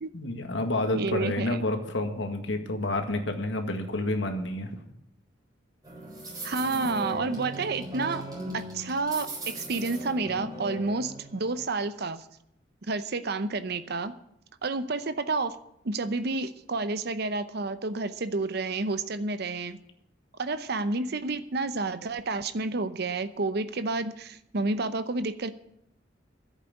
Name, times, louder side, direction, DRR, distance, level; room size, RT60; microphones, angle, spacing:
voice 1, 0.1-4.7, left 2 dB, 80° left, 6 dB, 1.9 m, -29 dB
voice 2, 0.9-1.6 6.4-8.2 8.5-12.2 12.8-14.1 14.6-15.6 15.8-19.8 20.4-25.5, right 3 dB, 60° right, 12 dB, 0.8 m, -30 dB
sound 1, 5.8-11.7, right 1 dB, 20° right, 7.5 m, -39 dB
11.0 x 8.2 x 9.8 m, 0.76 s
head